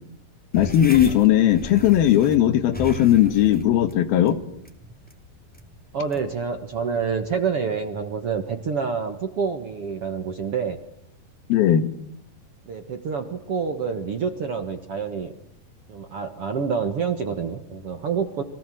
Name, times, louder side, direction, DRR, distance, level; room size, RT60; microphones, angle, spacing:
voice 1, 0.5-4.4 11.5-11.9, left 11 dB, 70° left, 11 dB, 3.2 m, -18 dB
sound 1, 0.5-7.4, left 1 dB, 5° left, 2.3 m, -39 dB
voice 2, 5.9-10.8 12.7-15.3 15.9-18.4, right 6 dB, 50° right, 7 dB, 1.9 m, -27 dB
29.5 x 24.5 x 7.8 m, 0.71 s
omnidirectional pair, 4.6 m